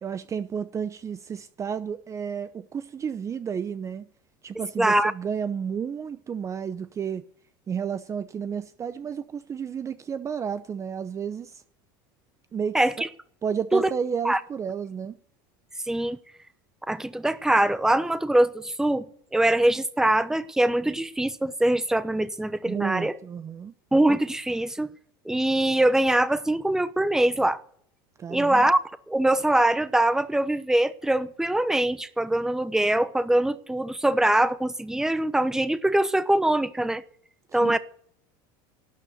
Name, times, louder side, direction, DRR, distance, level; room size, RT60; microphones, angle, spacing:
voice 1, 0.0-4.1 4.4-7.2 7.7-11.6 12.5-13.1 13.4-15.2 22.6-23.7 28.2-28.7 37.5-37.7, right 7 dB, 25° right, 0.7 m, -31 dB
voice 2, 4.8-5.1 12.7-12.9 13.7-13.9 14.2-14.4 15.9-16.2 16.9-19.0 19.3-23.1 23.9-24.9 25.3-27.6 28.3-28.8 29.1-37.0 37.5-37.8, right 1 dB, 5° right, 0.9 m, -23 dB
12.5 x 9.0 x 9.7 m
supercardioid pair, 110°, 11 cm